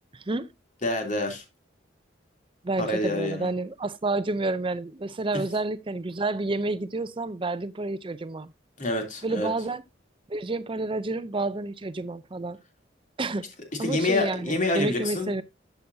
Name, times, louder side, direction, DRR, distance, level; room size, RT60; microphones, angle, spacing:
voice 1, 0.1-0.5 2.6-8.5 9.2-9.8 10.3-12.6 13.2-13.5 13.8-15.4, right 2 dB, 30° right, 0.6 m, -29 dB
voice 2, 0.8-1.4 2.8-3.5 8.8-9.5 13.8-15.3, left 2 dB, 45° left, 3.0 m, -27 dB
12.5 x 7.0 x 2.7 m
head